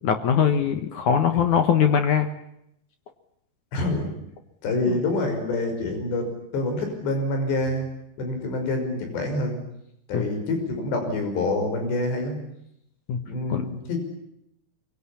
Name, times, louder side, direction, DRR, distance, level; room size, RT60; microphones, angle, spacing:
voice 1, 0.0-2.3 4.9-5.0 10.1-10.3 13.1-13.2 13.5-13.6, left 8 dB, 60° left, 8 dB, 2.2 m, -21 dB
voice 2, 3.7-4.1 4.6-6.3 6.5-7.9 8.2-9.6 10.1-12.4 13.2-14.0, left 2 dB, 80° left, 5 dB, 8.0 m, -26 dB
24.5 x 23.0 x 10.0 m, 0.78 s
omnidirectional pair, 4.9 m